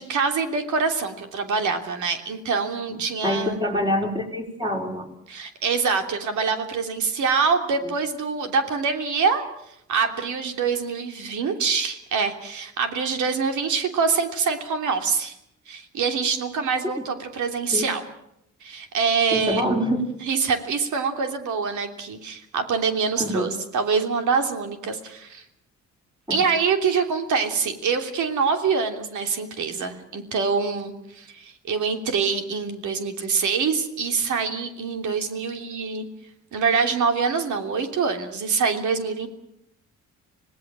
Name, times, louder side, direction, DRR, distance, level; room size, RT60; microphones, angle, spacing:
voice 1, 0.0-3.6 5.3-9.4 9.9-15.3 15.7-18.0 18.6-19.6 20.2-25.4 26.3-36.1 36.5-39.3, right 5 dB, 75° right, 6 dB, 3.2 m, -25 dB
voice 2, 2.9-5.1 17.7-17.9 19.3-20.1 23.2-23.5 26.3-26.4, equal, 15° right, 1 dB, 4.9 m, -26 dB
26.0 x 18.5 x 7.5 m, 0.78 s
cardioid pair, 90°, 30 cm